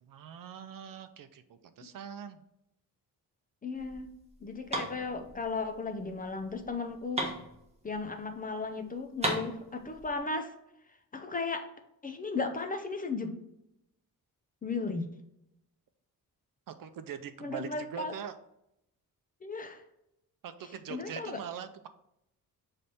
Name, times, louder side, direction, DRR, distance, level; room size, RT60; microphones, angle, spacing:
voice 1, 0.0-2.4 16.7-18.3 20.4-21.9, right 8 dB, 65° right, 10 dB, 0.5 m, -43 dB
voice 2, 3.6-4.1 4.4-7.3 7.8-10.5 11.1-11.7 12.0-13.3 14.6-15.0 17.4-18.1 19.4-19.8 20.9-21.4, left 4 dB, 25° left, 6 dB, 0.4 m, -35 dB
sound 1, 3.7-8.3 8.6-8.7 8.9-10.2, right 1 dB, 15° right, 1.2 m, -37 dB
6.7 x 3.3 x 4.2 m, 0.82 s
wide cardioid pair, 175°, 37 cm